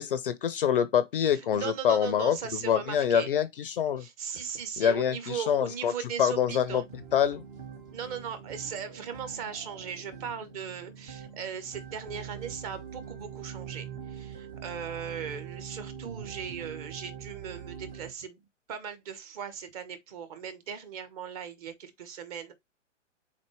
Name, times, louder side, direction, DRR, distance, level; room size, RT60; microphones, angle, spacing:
voice 1, 0.0-2.4 2.6-4.1 4.8-5.9 6.2-6.8 7.1-7.4, left 8 dB, 45° left, 0.5 m, -25 dB
voice 2, 1.5-3.3 4.0-6.9 7.9-18.4 18.7-22.5, right 7 dB, 30° right, 1.0 m, -38 dB
sound 1, 6.3-18.1, right 8 dB, 15° right, 0.4 m, -43 dB
4.2 x 4.0 x 3.1 m
figure-of-eight pair, 115°, 38 cm